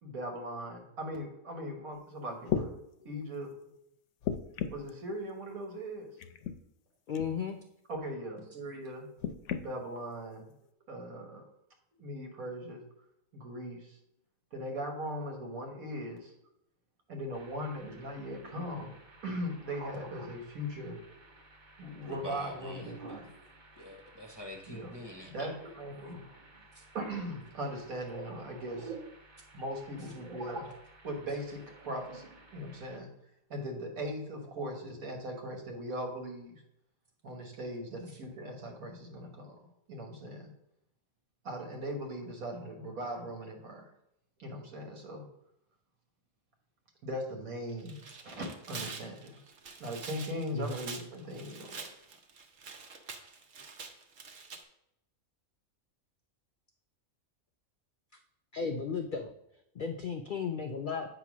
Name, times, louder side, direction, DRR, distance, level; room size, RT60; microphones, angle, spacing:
voice 1, 0.0-2.8 3.0-3.5 4.7-6.1 7.9-9.1 9.5-10.5 10.9-11.4 12.0-12.8 13.3-14.0 14.5-16.3 17.1-19.0 19.2-21.0 21.8-23.3 24.7-24.9 25.3-26.2 26.9-28.9 29.5-30.7 31.0-33.1 33.5-36.6 37.2-40.5 41.4-43.9 44.4-45.2 47.0-49.4 49.8-51.8, equal, 85° right, 3 dB, 1.7 m, -39 dB
sound 1, 1.9-2.0 2.5-2.7 4.2-4.9 6.2-6.6 7.1-7.3 9.2-9.7 10.5-10.6, left 8 dB, 70° left, 0.8 m, -34 dB
voice 2, 7.1-7.6 26.7-26.8 50.5-50.8 58.5-59.3 59.7-61.1, left 5 dB, 85° left, 5 dB, 0.4 m, -34 dB
sound 2, 17.3-33.0, right 3 dB, 40° right, 0.9 m, -51 dB
voice 3, 22.0-23.2 23.8-25.3, left 1 dB, 30° left, 1 dB, 0.5 m, -45 dB
Tearing, 47.7-54.6, right 5 dB, 65° right, 1.1 m, -46 dB
8.4 x 2.9 x 6.0 m, 0.80 s
omnidirectional pair, 1.4 m